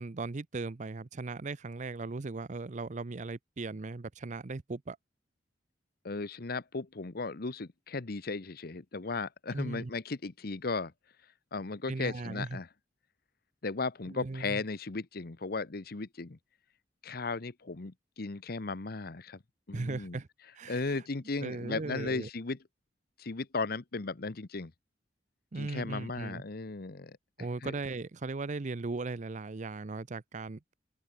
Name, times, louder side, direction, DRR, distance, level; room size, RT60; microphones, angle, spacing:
voice 1, 0.0-5.0 9.5-9.9 11.9-12.6 14.1-14.6 19.7-20.3 20.5-21.0 21.4-22.3 25.5-26.4 27.4-30.7, right 3 dB, 45° right, 0.6 m, -38 dB
voice 2, 6.0-10.9 11.5-12.7 13.6-16.4 17.0-19.4 19.7-20.2 20.7-22.6 23.2-24.7 25.6-27.2 27.6-27.7, left 3 dB, 60° left, 0.9 m, -36 dB
open air
head